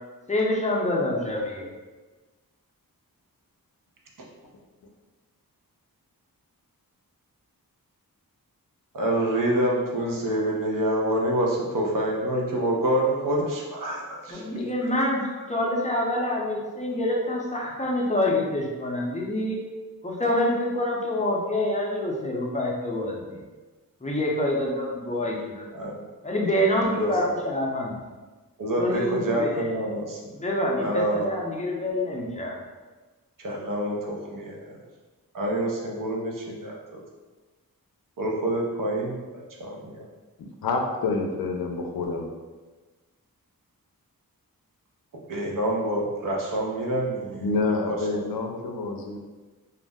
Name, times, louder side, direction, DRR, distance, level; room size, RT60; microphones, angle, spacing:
voice 1, 0.3-1.7 14.3-15.2 15.5-19.6 20.0-23.4 24.0-25.8 26.2-28.0 28.8-29.5 30.3-32.6, left 1 dB, 20° left, -3 dB, 0.5 m, -26 dB
voice 2, 8.9-14.6 25.7-26.0 26.8-27.1 28.6-30.2 30.8-31.3 33.4-34.8 35.3-37.0 38.2-40.1 45.3-47.5 47.9-48.0, right 1 dB, 60° right, -2 dB, 0.6 m, -27 dB
voice 3, 40.4-42.3 47.4-49.2, left 3 dB, 75° left, 3 dB, 0.5 m, -28 dB
2.4 x 2.0 x 3.4 m, 1.3 s
wide cardioid pair, 105°, 36 cm